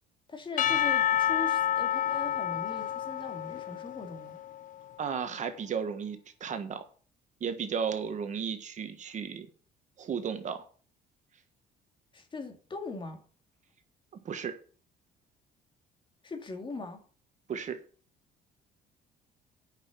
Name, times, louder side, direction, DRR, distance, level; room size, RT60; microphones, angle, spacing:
voice 1, 0.3-4.4 12.1-13.2 16.2-17.0, left 3 dB, 30° left, 2.4 m, -40 dB
Percussion / Church bell, 0.6-4.8, left 10 dB, 50° left, 0.6 m, -29 dB
voice 2, 5.0-6.8 7.4-9.5 10.0-10.6 14.2-14.5 17.5-17.8, right 7 dB, 45° right, 1.5 m, -34 dB
8.9 x 6.1 x 7.7 m
cardioid pair, 110°, 17 cm